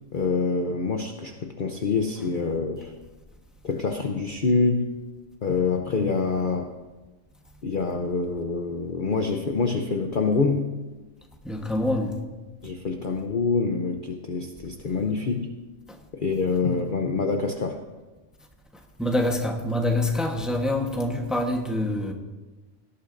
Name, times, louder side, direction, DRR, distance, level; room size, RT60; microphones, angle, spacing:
voice 1, 0.1-2.9 3.6-4.9 5.4-6.7 7.6-10.7 12.6-15.5 16.1-17.8, left 4 dB, 45° left, 0.7 m, -26 dB
voice 2, 11.4-12.2 19.0-22.1, left 1 dB, ahead, 0.9 m, -25 dB
18.5 x 11.5 x 2.6 m
omnidirectional pair, 1.4 m